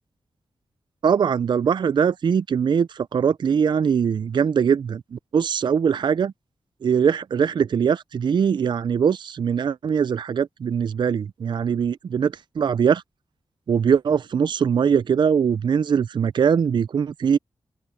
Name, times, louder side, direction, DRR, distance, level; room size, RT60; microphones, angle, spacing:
voice 1, 1.0-6.3 6.8-13.0 13.7-17.4, right 7 dB, 55° right, 0.4 m, -21 dB
open air
wide cardioid pair, 100°, 9 cm